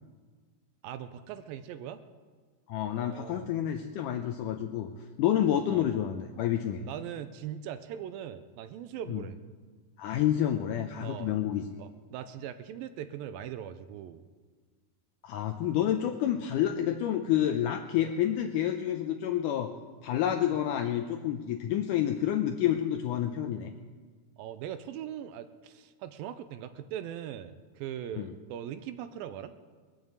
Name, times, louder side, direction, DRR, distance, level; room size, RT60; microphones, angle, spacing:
voice 1, 0.8-2.0 2.9-3.5 5.7-5.9 6.8-9.4 11.0-11.3 11.8-14.2 24.4-29.5, right 10 dB, 80° right, 11 dB, 2.3 m, -40 dB
voice 2, 2.7-4.9 5.2-6.8 9.1-9.2 10.0-11.7 15.2-19.7 20.0-23.7 28.1-28.3, left 11 dB, 85° left, 5 dB, 1.8 m, -29 dB
21.0 x 7.3 x 8.0 m, 1.5 s
omnidirectional pair, 4.3 m